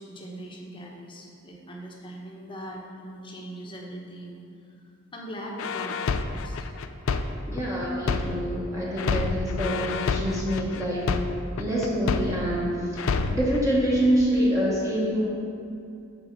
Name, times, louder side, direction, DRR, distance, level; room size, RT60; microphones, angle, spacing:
voice 1, 0.0-4.4 5.1-6.7, right 1 dB, 25° left, -1 dB, 1.0 m, -40 dB
sound 1, 5.6-8.6 9.0-12.6 13.0-13.6, left 4 dB, 85° left, 0.4 m, -28 dB
voice 2, 7.5-11.1 11.6-15.3, equal, 15° right, -6 dB, 1.2 m, -26 dB
6.1 x 5.0 x 6.5 m, 2.5 s
head